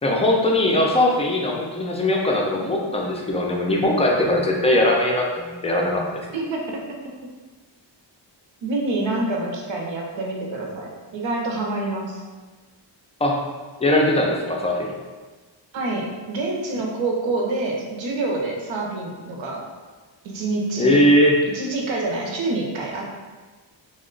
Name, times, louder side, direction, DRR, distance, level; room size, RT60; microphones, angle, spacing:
voice 1, 0.0-6.2 13.2-13.4 13.8-14.9 20.8-21.4, left 1 dB, 15° left, -1 dB, 0.4 m, -20 dB
voice 2, 6.3-6.8 8.6-12.2 15.7-19.7 20.2-21.0 21.5-23.1, right 2 dB, 75° right, -1 dB, 0.8 m, -27 dB
2.9 x 2.1 x 3.7 m, 1.3 s
wide cardioid pair, 120°, 46 cm